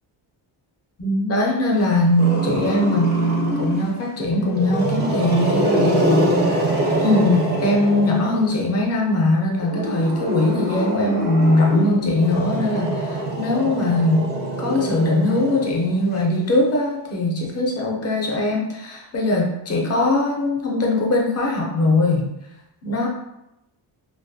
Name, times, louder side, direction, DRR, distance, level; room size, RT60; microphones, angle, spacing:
voice 1, 1.0-6.5 7.0-22.3 22.8-23.1, left 1 dB, 35° left, -2 dB, 0.5 m, -21 dB
Growling, 2.2-3.9 4.5-8.6 9.6-16.1, right 1 dB, 25° right, 0.3 m, -24 dB
2.3 x 2.3 x 2.5 m, 0.87 s
wide cardioid pair, 175°, 46 cm